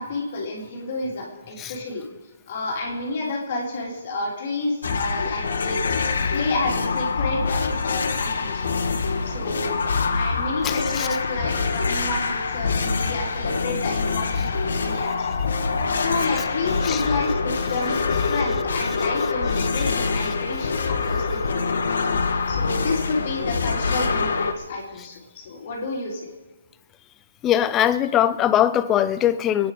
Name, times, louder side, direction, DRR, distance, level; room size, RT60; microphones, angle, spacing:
voice 1, 0.0-2.0 2.5-5.8 6.3-8.7 9.2-9.8 10.1-15.4 15.9-21.6 22.5-26.3, left 3 dB, 35° left, 3.6 m, -30 dB
sound 1, 4.8-24.5, left 4 dB, 60° left, 1.9 m, -25 dB
voice 2, 10.6-11.1 16.9-17.0 27.4-29.7, left 11 dB, 10° left, 0.4 m, -21 dB
26.0 x 9.6 x 5.0 m
hypercardioid pair, 175°, 0 cm